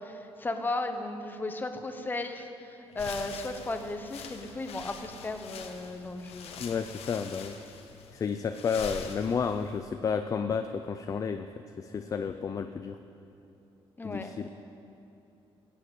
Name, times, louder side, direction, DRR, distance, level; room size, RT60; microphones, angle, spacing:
voice 1, 0.0-6.6 14.0-14.5, left 2 dB, 20° left, 6 dB, 1.0 m, -35 dB
sound 1, 2.9-9.8, left 6 dB, 85° left, 1.2 m, -44 dB
voice 2, 6.6-7.6 8.1-11.5 11.8-13.0 14.0-14.5, left 6 dB, 35° left, 8 dB, 0.4 m, -31 dB
16.0 x 8.5 x 8.3 m, 2.8 s
cardioid pair, 145°, 10 cm